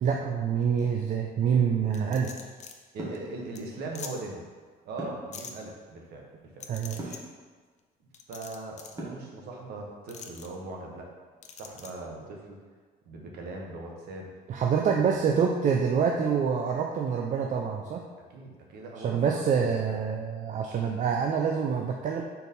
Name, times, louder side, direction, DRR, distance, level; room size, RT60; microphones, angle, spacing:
voice 1, 0.0-2.3 6.7-7.2 14.5-18.0 19.0-22.2, right 6 dB, 50° right, 1 dB, 0.5 m, -26 dB
sound 1, 1.9-2.7 3.1-3.2 3.5-3.6 3.9-4.1 5.3-5.5 6.6-7.2 8.1-9.0 10.1-10.5 11.4-11.9, left 6 dB, 45° left, 0.6 m, -43 dB
voice 2, 2.9-4.4 4.8-6.2 6.6-6.7 8.3-11.1 11.6-12.6 13.1-14.3 18.3-19.5 19.9-20.0 20.7-20.9, right 2 dB, 75° right, 0 dB, 1.3 m, -40 dB
sound 2, 3.0-3.3 5.0-5.4 7.0-7.3 9.0-9.4, right 2 dB, 20° right, 1.6 m, -38 dB
4.7 x 4.0 x 5.4 m, 1.4 s
cardioid pair, 110°, 17 cm